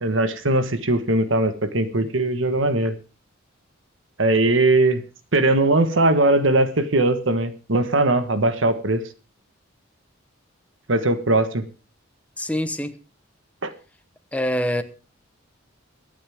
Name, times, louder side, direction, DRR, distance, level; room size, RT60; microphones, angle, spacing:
voice 1, 0.0-2.9 4.2-5.0 5.3-9.0 10.9-11.6 13.6-13.7, right 2 dB, 70° right, 1.4 m, -20 dB
voice 2, 12.4-12.9 14.3-14.8, equal, 5° left, 1.1 m, -24 dB
23.5 x 9.1 x 3.6 m
head